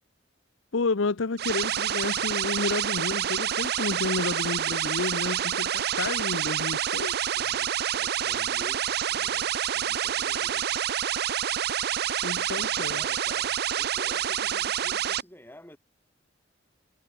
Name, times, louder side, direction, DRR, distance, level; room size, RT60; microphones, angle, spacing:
voice 1, 0.7-7.4 12.2-13.0, left 3 dB, 85° left, 0.8 m, -31 dB
sound 1, 1.4-15.2, right 10 dB, 55° right, 0.5 m, -28 dB
voice 2, 7.3-10.7 12.3-15.8, equal, 10° left, 8.0 m, -49 dB
head